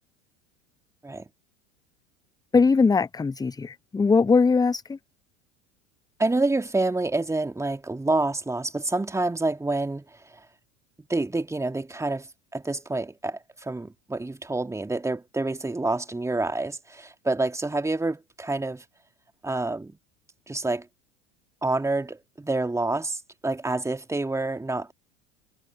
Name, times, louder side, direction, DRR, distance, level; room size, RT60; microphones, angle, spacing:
voice 1, 2.5-5.0, left 4 dB, 10° left, 0.9 m, -21 dB
voice 2, 6.2-10.2 11.1-18.8 19.4-20.0 20.5-20.9 21.6-24.9, right 2 dB, 10° right, 3.0 m, -28 dB
figure-of-eight pair, 75°, 37 cm